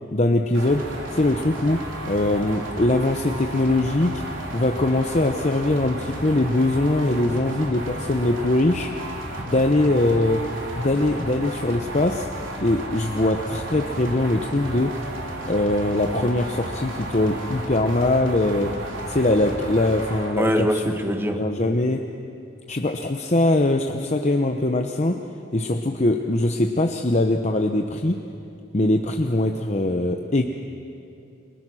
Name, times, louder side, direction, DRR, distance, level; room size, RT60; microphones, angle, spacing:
voice 1, 0.1-0.9 1.1-4.2 4.5-8.9 9.4-10.5 10.8-12.3 12.6-15.0 15.5-18.8 19.1-20.8 21.4-22.0 22.7-25.2 25.5-28.2 28.7-30.4, left 2 dB, 35° left, 4 dB, 0.9 m, -22 dB
sound 1, 0.5-20.3, right 1 dB, 70° right, 4.1 m, -33 dB
voice 2, 20.4-21.5, equal, 10° right, 5 dB, 1.5 m, -23 dB
30.0 x 23.0 x 6.3 m, 2.6 s
head